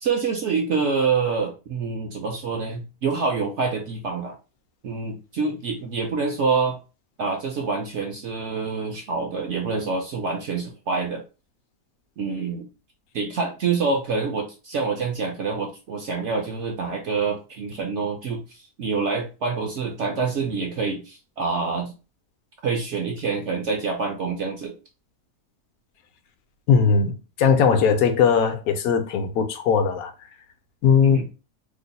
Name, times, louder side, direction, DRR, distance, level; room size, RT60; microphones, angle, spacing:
voice 1, 0.0-4.4 4.8-6.8 7.2-11.2 12.2-12.7 13.1-21.9 22.6-24.7 31.0-31.2, right 4 dB, 65° right, 0.7 m, -26 dB
voice 2, 26.7-27.1 27.4-30.1 30.8-31.2, left 6 dB, 70° left, 1.0 m, -19 dB
3.0 x 2.1 x 3.9 m
omnidirectional pair, 1.6 m